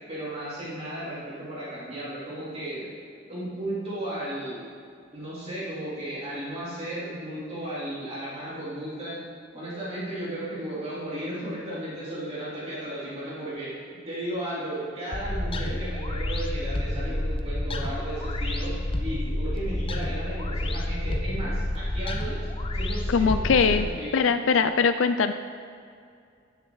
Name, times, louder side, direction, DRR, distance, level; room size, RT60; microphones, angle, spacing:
voice 1, 0.1-2.9 3.3-4.6 5.1-9.2 9.5-18.7 19.0-22.5 22.7-24.2, right 1 dB, 35° right, -9 dB, 3.2 m, -35 dB
sound 1, 15.1-23.8, left 1 dB, 30° left, 0.7 m, -29 dB
voice 2, 23.1-23.9 24.1-25.3, left 5 dB, 75° left, 10 dB, 0.4 m, -21 dB
18.5 x 7.1 x 4.0 m, 2.3 s
head